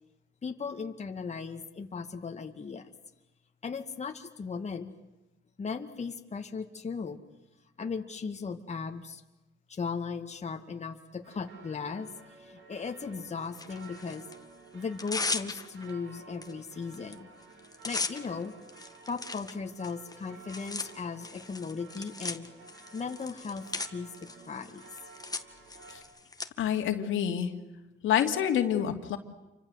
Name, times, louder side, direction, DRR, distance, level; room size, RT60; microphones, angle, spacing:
voice 1, 0.4-2.9 3.6-4.9 5.6-7.2 7.8-9.2 9.7-12.1 12.4-14.3 14.7-17.3 17.8-18.5 19.1-22.5 22.9-24.8, left 5 dB, 35° left, 5 dB, 2.1 m, -37 dB
sound 1, 11.2-26.0, right 5 dB, 80° right, 5.6 m, -53 dB
Tearing, 13.5-14.4 14.8-15.9 16.4-16.5 16.8-17.1 17.4-26.5, left 3 dB, 20° left, 2.0 m, -38 dB
voice 2, 26.6-27.5 28.0-29.2, left 9 dB, 80° left, 5 dB, 2.7 m, -27 dB
28.5 x 25.0 x 8.0 m, 1.0 s
cardioid pair, 90°, 20 cm